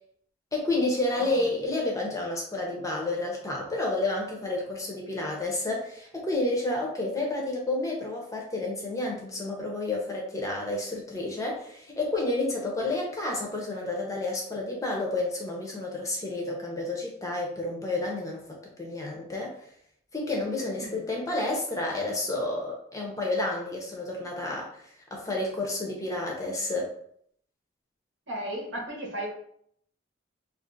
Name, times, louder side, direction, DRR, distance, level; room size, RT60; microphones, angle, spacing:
voice 1, 0.5-18.4 18.8-19.5 20.1-24.8 25.1-26.9, left 2 dB, 15° left, -1 dB, 0.6 m, -30 dB
voice 2, 1.1-1.5 20.6-21.0 28.3-29.3, right 1 dB, 70° right, -2 dB, 1.1 m, -36 dB
2.5 x 2.5 x 3.8 m, 0.67 s
head